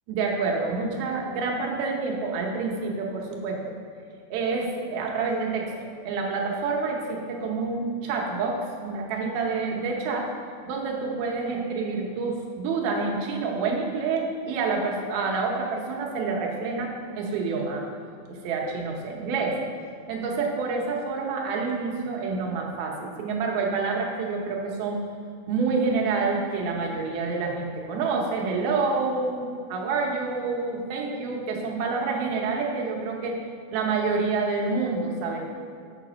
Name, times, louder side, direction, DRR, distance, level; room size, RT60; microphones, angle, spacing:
voice 1, 0.1-3.6 4.3-5.7 6.0-10.3 10.7-17.9 18.3-19.6 20.1-25.0 25.5-33.3 33.7-35.4, right 4 dB, 85° right, 0 dB, 2.9 m, -28 dB
7.9 x 5.0 x 6.2 m, 2.4 s
omnidirectional pair, 4.2 m